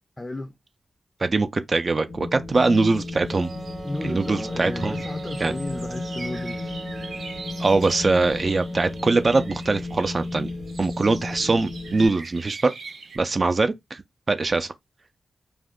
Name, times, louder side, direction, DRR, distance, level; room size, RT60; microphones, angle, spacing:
voice 1, 0.2-0.5 3.8-6.8, left 2 dB, 20° left, 0.4 m, -34 dB
voice 2, 1.2-3.5 4.0-5.0 5.4-5.5 7.6-10.5 10.8-12.7 13.2-14.0 14.3-14.7, right 3 dB, 50° right, 0.4 m, -22 dB
Wind, 2.1-12.1, left 3 dB, 85° left, 0.8 m, -34 dB
sound 1, 2.5-13.2, right 4 dB, 80° right, 0.7 m, -43 dB
Wind instrument woodwind instrument, 3.3-9.8, right 2 dB, 25° right, 0.8 m, -39 dB
2.5 x 2.1 x 3.5 m
cardioid pair, 55°, 0 cm